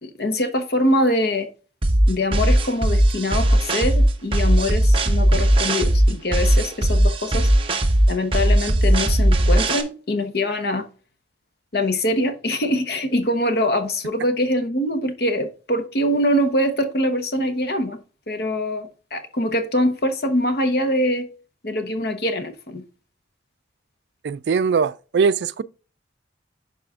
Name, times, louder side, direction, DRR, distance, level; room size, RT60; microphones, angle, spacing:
voice 1, 0.0-1.5 2.1-7.5 8.1-10.9 11.7-18.0 18.3-21.3 21.6-22.8, left 1 dB, 55° left, 1.0 m, -23 dB
sound 1, 1.8-9.8, right 1 dB, 30° right, 0.9 m, -18 dB
voice 2, 24.2-25.6, right 5 dB, 70° right, 0.3 m, -21 dB
11.5 x 4.2 x 2.4 m
head